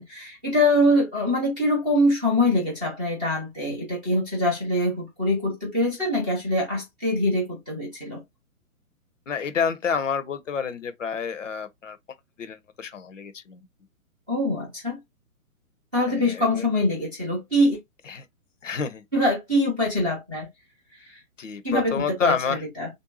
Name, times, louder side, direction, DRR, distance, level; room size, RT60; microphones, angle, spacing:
voice 1, 0.0-8.2 14.3-15.0 15.9-17.8 19.1-20.5 21.1-21.2 21.6-22.3 22.8-22.9, left 1 dB, 5° right, 0.5 m, -24 dB
voice 2, 9.3-12.0 12.4-13.6 16.0-16.7 18.1-18.2 18.6-19.0 21.4-22.6, left 6 dB, 55° left, 0.7 m, -28 dB
3.3 x 2.6 x 2.9 m
figure-of-eight pair, 130°, 44 cm